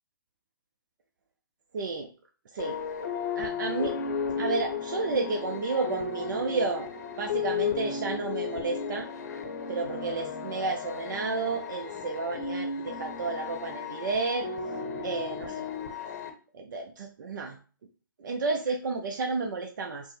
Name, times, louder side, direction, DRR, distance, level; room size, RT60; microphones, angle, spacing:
voice 1, 1.7-2.1 2.5-2.8 3.4-4.0 4.4-6.9 7.2-9.1 9.7-14.5 15.0-15.7 16.5-17.6 18.2-20.1, right 3 dB, 60° right, 4 dB, 0.5 m, -31 dB
sound 1, 2.6-16.3, left 6 dB, 50° left, 0.7 m, -34 dB
5.2 x 2.1 x 3.1 m, 0.38 s
hypercardioid pair, 140°, 12 cm